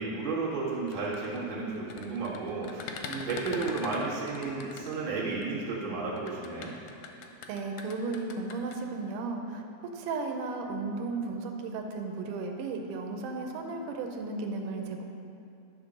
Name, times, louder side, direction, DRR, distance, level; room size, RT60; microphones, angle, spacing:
voice 1, 0.0-6.8, right 3 dB, 55° right, -7 dB, 0.6 m, -33 dB
sound 1, 0.8-5.4 6.2-8.8, left 5 dB, 85° left, 2.1 m, -42 dB
voice 2, 7.5-9.6 9.9-15.0, right 3 dB, 85° right, 3 dB, 2.2 m, -34 dB
10.0 x 3.7 x 6.2 m, 2.7 s
omnidirectional pair, 3.7 m